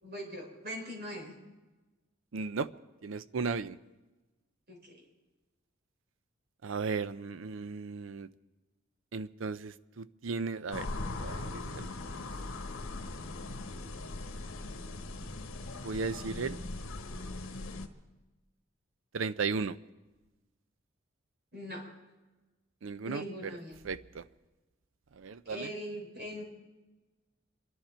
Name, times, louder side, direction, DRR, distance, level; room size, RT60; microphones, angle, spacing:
voice 1, 0.0-1.3 4.7-5.0 21.5-21.9 23.0-23.8 25.4-26.4, equal, 50° right, 0 dB, 4.1 m, -41 dB
voice 2, 2.3-2.7 3.0-3.8 6.6-8.3 9.1-10.9 11.2-11.9 15.8-16.6 19.1-19.8 22.8-23.5 23.8-24.2 25.2-25.7, right 4 dB, 70° right, 15 dB, 0.5 m, -35 dB
sound 1, 10.7-17.9, left 2 dB, 80° left, 1.2 m, -40 dB
25.5 x 11.5 x 4.4 m, 1.1 s
head